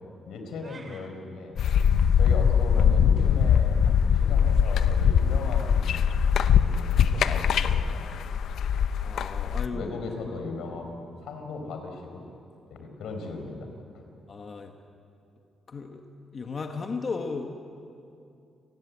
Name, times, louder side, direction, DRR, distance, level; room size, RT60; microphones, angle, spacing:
voice 1, 0.2-1.6 2.2-8.1 9.7-12.3 12.7-13.7 13.9-14.0, left 3 dB, 85° left, 5 dB, 4.8 m, -38 dB
sound 1, 0.6-1.1, right 3 dB, 25° right, 2.5 m, -48 dB
sound 2, 1.6-9.7, left 7 dB, 70° left, 0.8 m, -22 dB
voice 2, 9.0-9.9 10.2-10.3 14.3-14.7 15.7-16.0 16.3-17.5, left 4 dB, 35° left, 4 dB, 1.4 m, -35 dB
30.0 x 19.0 x 8.5 m, 2.5 s
wide cardioid pair, 175°, 0 cm